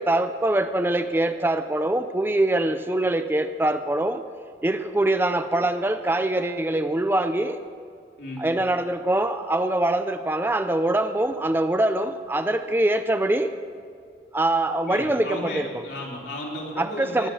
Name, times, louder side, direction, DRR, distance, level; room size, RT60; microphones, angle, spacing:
voice 1, 0.0-4.2 4.6-7.6 8.4-13.6 14.3-15.7 16.8-17.3, right 1 dB, 10° right, 10 dB, 0.4 m, -23 dB
voice 2, 14.8-17.3, left 1 dB, 75° left, -3 dB, 3.2 m, -34 dB
19.5 x 7.8 x 6.4 m, 2.2 s
head